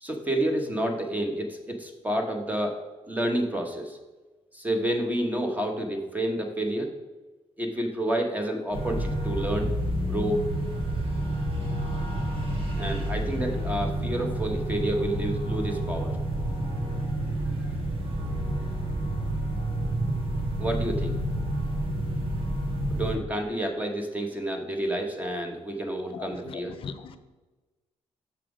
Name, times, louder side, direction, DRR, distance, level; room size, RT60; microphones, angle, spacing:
voice 1, 0.0-2.8 3.1-4.0 4.5-6.9 7.6-9.7 10.0-10.4 12.8-16.1 17.4-17.7 20.6-21.2 22.9-26.8, right 1 dB, 15° right, 3 dB, 1.1 m, -29 dB
sound 1, 8.7-23.2, right 1 dB, 55° right, 1.7 m, -29 dB
voice 2, 26.1-27.2, left 6 dB, 55° left, 11 dB, 0.6 m, -39 dB
7.0 x 5.9 x 5.0 m, 1.2 s
cardioid pair, 140°, 11 cm